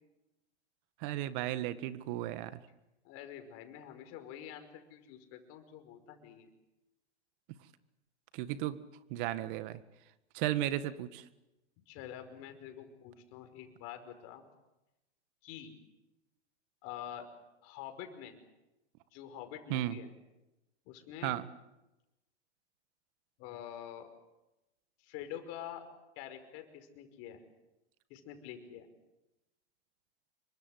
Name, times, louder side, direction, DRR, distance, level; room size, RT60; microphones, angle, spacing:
voice 1, 1.0-2.6 8.3-8.8 9.1-9.8 10.3-11.2 19.7-20.0 21.2-21.4, right 13 dB, 45° right, 13 dB, 1.8 m, -34 dB
voice 2, 3.0-6.5 11.9-14.5 15.4-15.7 16.8-17.3 17.6-18.4 19.1-20.1 20.9-21.4 23.4-24.1 25.0-25.8 26.2-27.4 28.1-28.9, left 10 dB, 45° left, 7 dB, 5.4 m, -46 dB
27.0 x 24.0 x 8.1 m, 0.99 s
hypercardioid pair, 120°, 34 cm